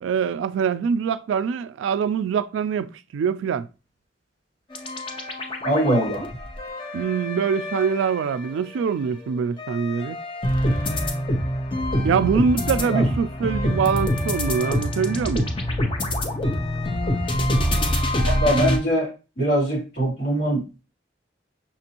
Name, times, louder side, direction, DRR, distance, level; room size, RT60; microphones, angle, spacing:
voice 1, 0.0-3.7 6.9-10.2 12.0-15.5, right 6 dB, 90° right, 0.3 m, -24 dB
sound 1, 4.7-8.8 9.2-18.8, left 1 dB, 30° left, 0.6 m, -25 dB
voice 2, 5.6-6.2 12.9-13.0 18.3-19.1 19.4-20.8, right 1 dB, 60° left, 2.5 m, -22 dB
5.9 x 2.6 x 2.8 m
head